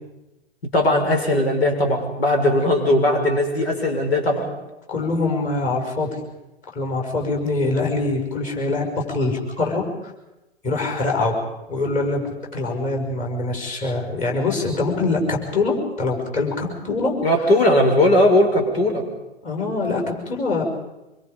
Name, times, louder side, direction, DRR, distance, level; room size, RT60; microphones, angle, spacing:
voice 1, 0.7-4.5 17.2-19.0, left 1 dB, 65° left, 3 dB, 5.7 m, -18 dB
voice 2, 4.9-6.2 6.7-9.8 10.6-11.4 11.7-17.2 19.4-20.6, left 3 dB, 25° left, 1 dB, 6.1 m, -24 dB
25.5 x 24.0 x 5.3 m, 1.0 s
figure-of-eight pair, 115°, 33 cm